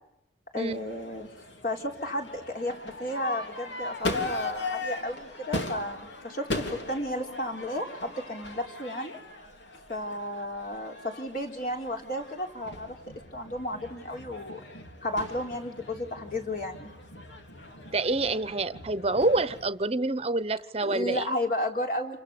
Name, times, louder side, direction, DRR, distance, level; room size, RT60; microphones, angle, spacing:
voice 1, 0.5-1.3 1.6-9.2 9.9-13.0 13.3-14.6 15.0-16.9 20.8-22.2, left 1 dB, 50° left, 4.0 m, -33 dB
Crowd / Fireworks, 0.7-19.7, left 2 dB, 80° left, 3.3 m, -39 dB
voice 2, 17.9-21.3, right 2 dB, 35° right, 1.0 m, -27 dB
29.0 x 24.5 x 7.0 m
head